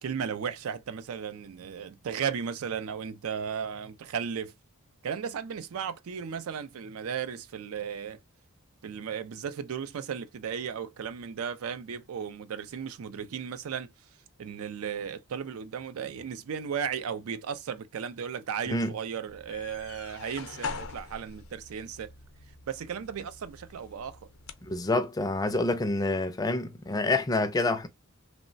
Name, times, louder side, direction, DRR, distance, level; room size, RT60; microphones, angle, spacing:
voice 1, 0.0-4.5 5.0-8.2 8.8-13.9 14.4-22.1 22.7-24.2, right 7 dB, 90° right, 0.4 m, -35 dB
sound 1, 19.3-24.8, left 5 dB, 85° left, 0.5 m, -43 dB
voice 2, 24.6-27.9, left 2 dB, 15° left, 0.3 m, -27 dB
3.1 x 2.0 x 2.5 m
head